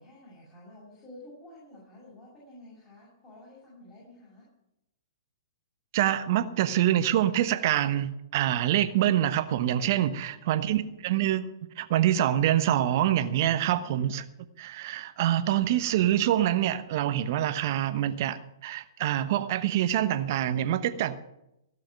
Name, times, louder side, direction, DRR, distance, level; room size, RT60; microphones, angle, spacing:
voice 1, 0.0-4.4 10.3-10.9 13.7-14.1, left 1 dB, 20° left, -7 dB, 6.7 m, -51 dB
voice 2, 5.9-11.5 11.8-14.2 14.6-21.2, right 12 dB, 50° right, 11 dB, 1.1 m, -25 dB
16.5 x 5.8 x 9.0 m, 0.87 s
hypercardioid pair, 115°, 2 cm